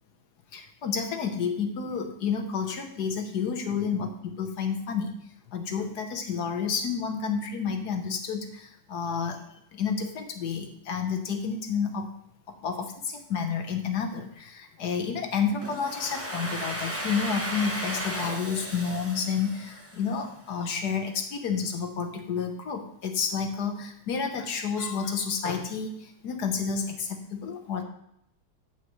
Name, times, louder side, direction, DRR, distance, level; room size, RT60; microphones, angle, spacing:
voice 1, 0.5-5.1 5.5-9.4 9.7-12.1 12.5-27.8, left 6 dB, 60° left, 5 dB, 1.4 m, -30 dB
Domestic sounds home sounds, 15.6-20.4, right 1 dB, 10° right, 0.9 m, -35 dB
9.1 x 8.7 x 3.1 m, 0.75 s
omnidirectional pair, 2.1 m